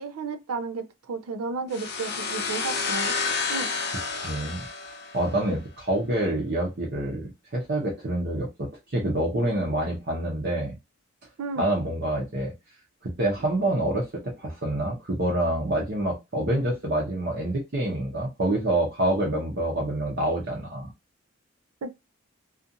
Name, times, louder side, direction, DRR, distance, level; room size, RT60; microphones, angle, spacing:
voice 1, 0.0-3.2 3.5-3.7 11.4-11.7 21.8-21.9, right 4 dB, 80° right, 0.4 m, -33 dB
sound 1, 1.7-5.4, left 4 dB, 45° left, 0.5 m, -30 dB
voice 2, 4.1-4.7 5.1-10.8 11.6-12.5 13.0-20.9, right 1 dB, 45° right, 0.7 m, -27 dB
2.5 x 2.4 x 2.6 m
head